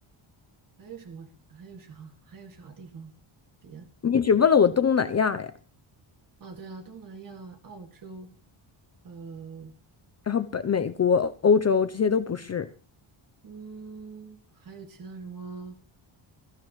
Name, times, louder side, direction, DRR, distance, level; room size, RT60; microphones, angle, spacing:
voice 1, 0.8-3.1 3.6-3.9 6.4-8.3 9.0-9.7 13.4-15.8, right 5 dB, 40° right, 2.1 m, -43 dB
voice 2, 4.0-5.5 10.3-12.7, left 6 dB, 30° left, 0.6 m, -22 dB
22.0 x 14.0 x 3.1 m
wide cardioid pair, 175°, 50 cm